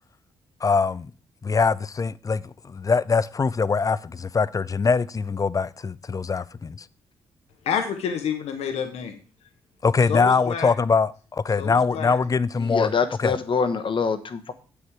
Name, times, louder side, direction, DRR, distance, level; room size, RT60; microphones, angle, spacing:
voice 1, 0.6-1.1 1.4-6.9 9.8-12.9 13.2-13.4, left 5 dB, 30° left, 0.5 m, -23 dB
voice 2, 7.6-9.2 10.1-10.7 11.6-12.2, left 7 dB, 70° left, 1.1 m, -28 dB
voice 3, 12.6-14.5, left 5 dB, 50° left, 1.1 m, -25 dB
7.9 x 6.6 x 4.7 m
hypercardioid pair, 45°, 11 cm